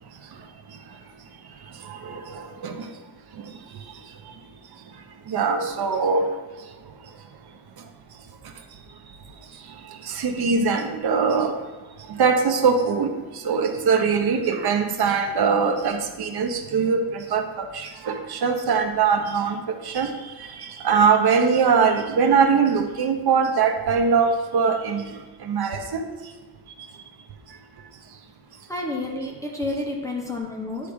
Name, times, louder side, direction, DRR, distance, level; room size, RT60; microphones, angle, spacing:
voice 1, 1.8-2.9 3.4-3.5 5.3-6.3 10.0-11.6 12.1-20.1 20.5-25.1 25.4-26.1, right 5 dB, 65° right, 6 dB, 0.9 m, -22 dB
voice 2, 28.7-30.9, left 2 dB, 10° left, -2 dB, 0.8 m, -30 dB
9.6 x 3.3 x 5.0 m, 1.3 s
wide cardioid pair, 140°, 41 cm